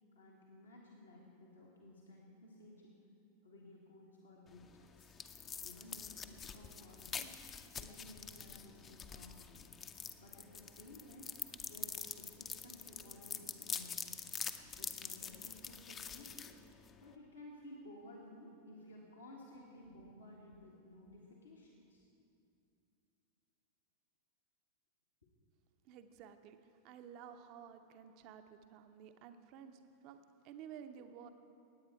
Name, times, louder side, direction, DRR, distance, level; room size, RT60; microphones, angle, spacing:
voice 1, 0.1-3.0 3.4-5.1 5.6-7.4 7.7-9.6 10.2-11.3 11.6-14.2 14.8-16.6 17.0-22.0, left 1 dB, 75° left, -3 dB, 1.6 m, -56 dB
sound 1, 4.5-17.1, left 6 dB, 25° left, 0.6 m, -46 dB
voice 2, 25.8-31.3, right 8 dB, 40° right, 8 dB, 0.6 m, -53 dB
18.5 x 8.8 x 4.7 m, 2.5 s
figure-of-eight pair, 90°, 0 cm